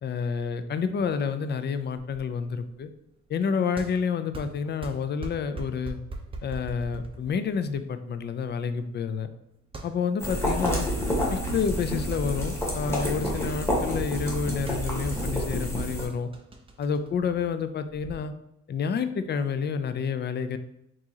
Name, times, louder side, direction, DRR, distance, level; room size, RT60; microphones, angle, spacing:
voice 1, 0.0-2.9 3.3-6.0 6.4-9.3 9.8-10.9 11.3-16.3 16.8-18.3 18.7-20.6, left 6 dB, 35° left, 11 dB, 0.4 m, -29 dB
sound 1, 2.0-18.2, right 2 dB, 20° right, 0.5 m, -42 dB
sound 2, 10.2-16.1, equal, 10° left, 1.2 m, -29 dB
4.5 x 3.0 x 2.8 m, 0.82 s
cardioid pair, 90°, 30 cm